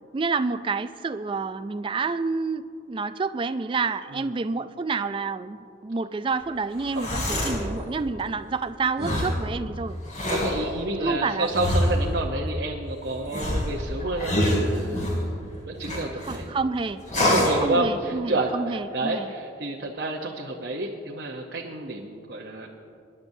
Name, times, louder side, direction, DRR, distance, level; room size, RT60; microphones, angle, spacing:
voice 1, 0.1-10.0 11.0-11.5 16.2-17.0 17.6-19.3, right 4 dB, 25° right, 11 dB, 0.3 m, -28 dB
sound 1, 6.8-7.6 9.0-9.4 10.1-10.6 11.5-12.1 13.3-15.2 15.8-16.4 17.1-17.6, left 1 dB, 40° left, 3.0 m, -25 dB
voice 2, 10.3-15.2 15.6-16.5 17.2-22.7, right 2 dB, 55° right, 0 dB, 0.8 m, -30 dB
25.5 x 11.0 x 2.7 m, 2.6 s
head